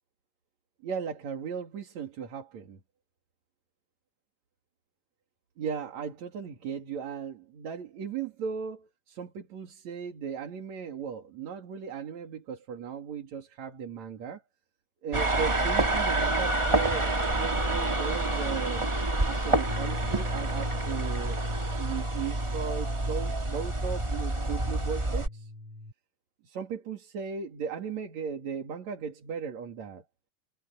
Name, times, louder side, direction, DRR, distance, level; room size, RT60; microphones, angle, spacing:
voice 1, 0.8-2.8 5.6-14.4 15.0-18.9 19.3-21.4 21.7-25.5 26.4-30.0, right 6 dB, 70° right, 3.6 m, -37 dB
sound 1, 15.1-25.3, right 2 dB, 20° right, 0.9 m, -28 dB
sound 2, 19.7-25.9, left 2 dB, 55° left, 2.6 m, -41 dB
omnidirectional pair, 3.4 m